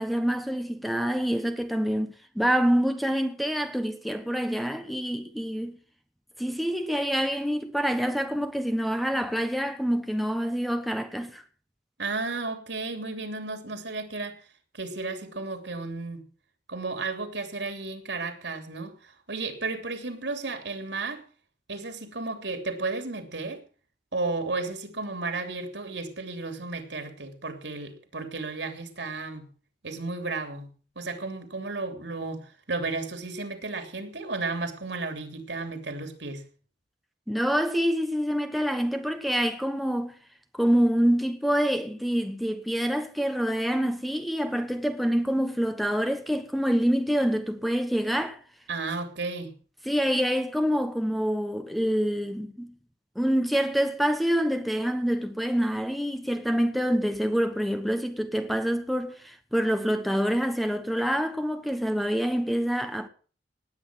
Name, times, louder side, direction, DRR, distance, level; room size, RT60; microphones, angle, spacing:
voice 1, 0.0-5.8 6.4-11.4 37.3-40.2 40.5-48.4 49.9-52.8 53.1-63.1, equal, ahead, 1.2 m, -26 dB
voice 2, 12.0-14.4 14.7-16.3 16.7-21.2 21.7-23.6 24.1-29.5 29.8-36.5 48.7-49.5, right 3 dB, 90° right, 3.1 m, -33 dB
18.5 x 8.7 x 6.3 m
head